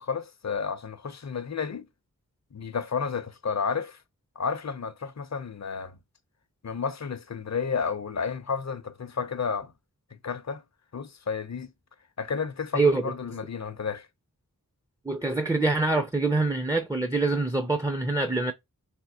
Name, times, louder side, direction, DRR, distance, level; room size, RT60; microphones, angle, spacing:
voice 1, 0.0-1.9 2.5-4.0 4.4-6.0 6.6-9.7 10.2-10.6 10.9-11.7 12.2-14.1, left 5 dB, 50° left, 0.6 m, -31 dB
voice 2, 12.7-13.1 15.1-18.5, right 3 dB, 10° right, 0.4 m, -25 dB
3.4 x 2.8 x 2.7 m
wide cardioid pair, 55°, 35 cm